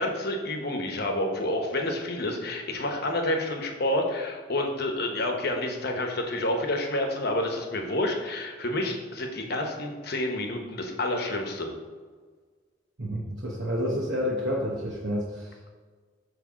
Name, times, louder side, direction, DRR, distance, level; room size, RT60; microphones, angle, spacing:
voice 1, 0.0-11.7, left 1 dB, 50° left, 3 dB, 1.0 m, -29 dB
voice 2, 13.0-15.7, equal, 55° right, -4 dB, 1.0 m, -29 dB
8.3 x 3.3 x 6.2 m, 1.5 s
head